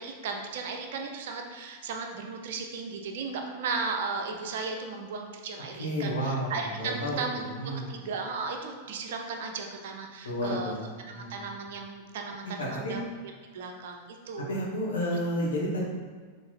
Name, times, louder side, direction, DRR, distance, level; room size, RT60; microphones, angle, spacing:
voice 1, 0.0-7.4 7.9-10.7 11.0-13.0 13.5-14.6, right 4 dB, 55° right, 3 dB, 0.8 m, -35 dB
voice 2, 5.8-7.2 7.6-7.9 10.2-10.8 11.0-11.3 12.6-13.0 14.5-15.8, equal, 65° left, -4 dB, 1.9 m, -31 dB
6.8 x 4.0 x 4.4 m, 1.5 s
figure-of-eight pair, 90°, 0 cm